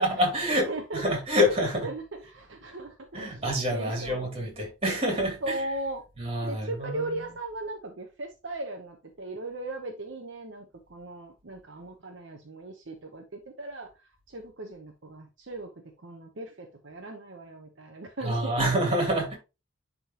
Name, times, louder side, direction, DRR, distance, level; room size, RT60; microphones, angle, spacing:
voice 1, 0.0-1.9 3.1-5.6 6.2-7.2 18.2-19.4, equal, 30° right, 2.8 m, -27 dB
voice 2, 0.7-1.0 1.8-3.4 3.7-4.3 5.4-6.0 6.4-13.9 14.3-15.7 16.0-18.5, right 2 dB, 65° right, 0.9 m, -38 dB
10.5 x 3.7 x 3.0 m
head